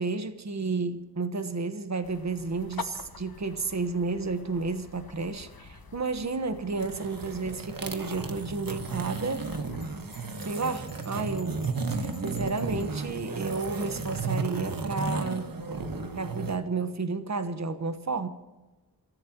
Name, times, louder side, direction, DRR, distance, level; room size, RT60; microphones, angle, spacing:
voice 1, 0.0-9.5 10.4-11.6 12.0-15.5 16.1-18.3, right 4 dB, 45° right, 1.3 m, -31 dB
sound 1, 2.0-9.9, left 5 dB, 70° left, 1.2 m, -46 dB
sound 2, 6.7-16.6, right 3 dB, 60° right, 1.6 m, -34 dB
Bell, 9.8-13.0, left 2 dB, ahead, 3.9 m, -54 dB
28.0 x 15.0 x 3.0 m
wide cardioid pair, 90°, 37 cm